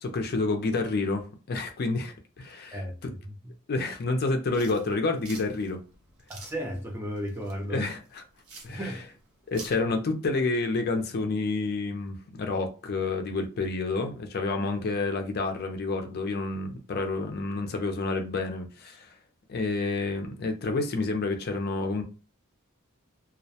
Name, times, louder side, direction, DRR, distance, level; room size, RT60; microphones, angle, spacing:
voice 1, 0.0-3.1 3.7-5.8 7.7-8.2 8.6-9.0 9.5-19.1 19.5-22.0, left 3 dB, 45° left, 0.4 m, -29 dB
sound 1, 4.5-9.8, right 3 dB, 80° right, 0.7 m, -48 dB
voice 2, 6.3-7.9 8.7-9.0, equal, 10° right, 0.4 m, -34 dB
2.3 x 2.1 x 2.7 m
head